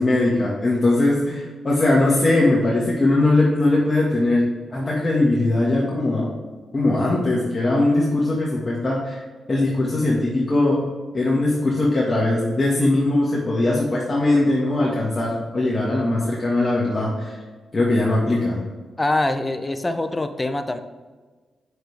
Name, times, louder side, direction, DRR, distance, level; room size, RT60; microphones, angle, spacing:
voice 1, 0.0-6.3 6.7-9.2 9.5-10.8 11.1-17.3 17.7-18.6, left 2 dB, 35° left, -5 dB, 1.6 m, -20 dB
voice 2, 19.0-20.8, left 2 dB, 20° left, 9 dB, 0.7 m, -24 dB
6.5 x 6.2 x 3.4 m, 1.3 s
cardioid pair, 55°, 0 cm